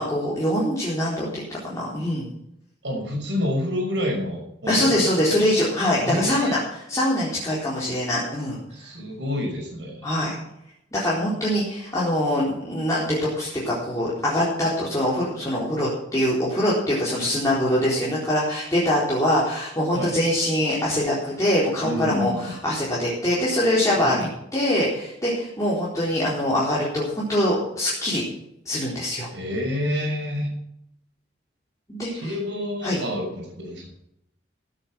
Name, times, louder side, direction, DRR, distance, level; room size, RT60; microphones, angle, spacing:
voice 1, 0.0-2.3 4.7-8.6 10.0-10.4 10.9-24.2 24.5-28.2 28.7-29.3 31.9-32.3 32.8-33.0, left 1 dB, 20° left, -7 dB, 3.9 m, -23 dB
voice 2, 2.8-5.1 6.0-6.5 8.7-10.0 19.9-20.1 21.8-22.5 24.0-24.3 29.3-30.5 32.2-33.9, left 1 dB, 75° right, 1 dB, 6.0 m, -28 dB
16.0 x 9.1 x 6.0 m, 0.78 s
head